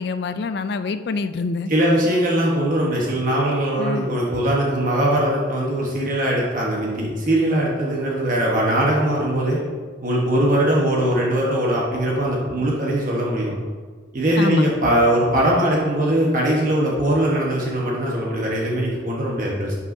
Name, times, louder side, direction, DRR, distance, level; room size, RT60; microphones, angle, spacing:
voice 1, 0.0-1.7 3.8-4.1 14.4-14.7, left 4 dB, 55° left, 11 dB, 0.4 m, -26 dB
voice 2, 1.7-9.6 10.0-13.5 14.1-19.8, right 1 dB, 45° right, -3 dB, 1.1 m, -21 dB
11.0 x 5.6 x 2.7 m, 1.5 s
head